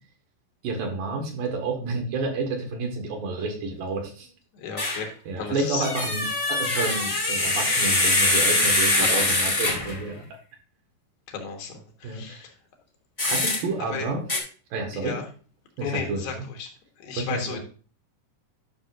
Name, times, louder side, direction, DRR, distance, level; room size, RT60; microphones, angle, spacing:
voice 1, 0.6-4.3 5.3-10.3 12.0-12.4 13.2-14.2 14.7-15.2 15.8-16.4 17.2-17.6, right 3 dB, 70° right, 2 dB, 3.3 m, -30 dB
voice 2, 4.5-5.9 8.9-9.5 11.3-12.5 13.9-14.1 15.0-15.2 15.8-16.7 17.0-17.6, left 5 dB, 75° left, 2 dB, 3.2 m, -34 dB
sound 1, 4.8-5.0 5.8-10.0 13.2-13.6 14.3-14.4, left 2 dB, 45° left, 0.4 m, -23 dB
11.0 x 6.3 x 2.5 m, 0.38 s
omnidirectional pair, 4.2 m